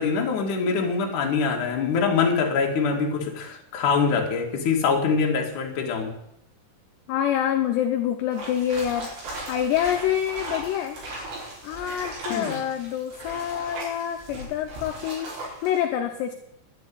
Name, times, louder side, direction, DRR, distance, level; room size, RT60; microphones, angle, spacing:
voice 1, 0.0-6.1 12.3-12.6, left 5 dB, 50° left, 1 dB, 3.0 m, -24 dB
voice 2, 7.1-9.1 9.5-11.0 11.6-15.3 15.6-16.3, left 10 dB, 75° left, 4 dB, 2.8 m, -26 dB
sound 1, 8.3-15.8, right 1 dB, 65° right, 7.2 m, -37 dB
11.5 x 8.7 x 9.9 m, 0.79 s
omnidirectional pair, 5.6 m